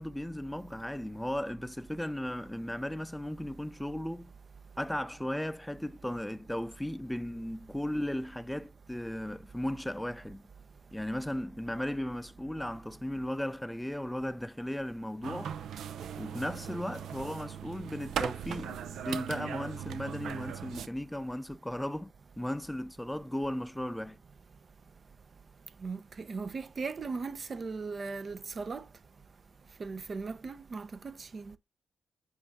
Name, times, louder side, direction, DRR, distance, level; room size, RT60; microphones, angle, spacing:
voice 1, 0.0-4.3 4.8-10.4 10.9-15.5 16.2-24.2, left 1 dB, 10° left, 0.5 m, -36 dB
sound 1, 15.2-20.9, right 9 dB, 85° right, 0.5 m, -39 dB
voice 2, 25.8-28.8 29.8-31.6, right 4 dB, 55° right, 0.7 m, -38 dB
7.5 x 2.6 x 5.3 m
supercardioid pair, 45°, 0 cm